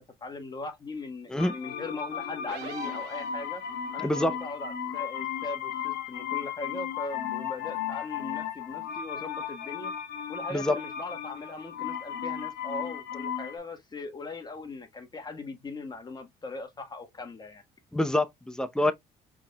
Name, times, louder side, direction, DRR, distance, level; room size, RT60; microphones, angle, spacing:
voice 1, 0.0-3.6 3.9-9.9 10.3-17.6 18.8-18.9, left 3 dB, 25° left, 1.5 m, -39 dB
sound 1, 1.4-13.6, left 9 dB, 75° left, 1.0 m, -35 dB
sound 2, 2.5-3.9, right 10 dB, 85° right, 1.1 m, -43 dB
voice 2, 4.0-4.3 10.5-10.8 17.9-18.9, left 1 dB, 5° left, 0.6 m, -26 dB
4.8 x 3.7 x 2.2 m
cardioid pair, 110°, 17 cm